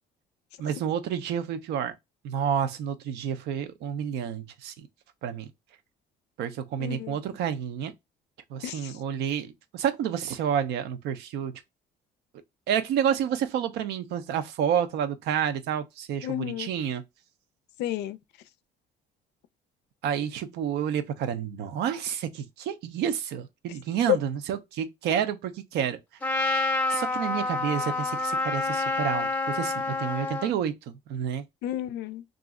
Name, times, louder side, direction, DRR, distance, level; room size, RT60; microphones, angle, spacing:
voice 1, 0.6-1.9 2.2-4.9 5.2-5.5 6.4-7.9 8.5-11.6 12.7-17.0 20.0-26.0 26.9-31.4, right 8 dB, 75° right, 0.5 m, -29 dB
voice 2, 6.8-7.2 8.6-9.0 16.2-16.7 17.8-18.2 31.6-32.2, left 12 dB, 80° left, 0.4 m, -33 dB
Trumpet, 26.2-30.5, left 3 dB, 10° left, 0.6 m, -28 dB
2.5 x 2.0 x 3.5 m
cardioid pair, 110°, 17 cm